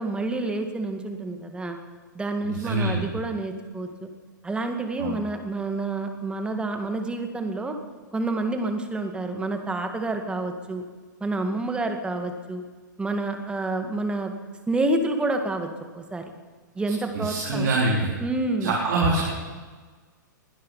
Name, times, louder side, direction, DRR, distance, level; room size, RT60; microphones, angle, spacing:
voice 1, 0.0-1.8 2.1-4.1 4.4-7.8 8.1-10.8 11.2-12.6 13.0-14.3 14.7-15.7 15.9-16.3 16.8-17.7 18.2-18.7, right 2 dB, 10° right, 5 dB, 2.0 m, -28 dB
voice 2, 2.5-3.1 5.0-5.2 17.1-18.1 18.6-19.3, right 2 dB, 60° right, -2 dB, 3.7 m, -24 dB
21.0 x 12.0 x 5.6 m, 1.4 s
figure-of-eight pair, 110°, 11 cm